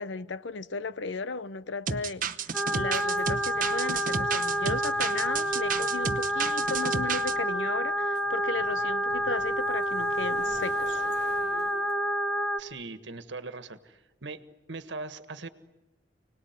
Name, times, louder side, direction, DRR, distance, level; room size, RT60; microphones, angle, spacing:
voice 1, 0.0-2.3 2.7-11.0, left 4 dB, 85° left, 0.8 m, -35 dB
sound 1, 1.9-7.3, right 6 dB, 45° right, 0.9 m, -32 dB
sound 2, 2.5-12.6, equal, 5° left, 0.9 m, -29 dB
sound 3, 2.6-12.0, left 1 dB, 60° left, 4.3 m, -50 dB
voice 2, 12.6-14.4 14.7-15.5, right 3 dB, 75° right, 1.5 m, -40 dB
29.5 x 19.5 x 9.5 m
head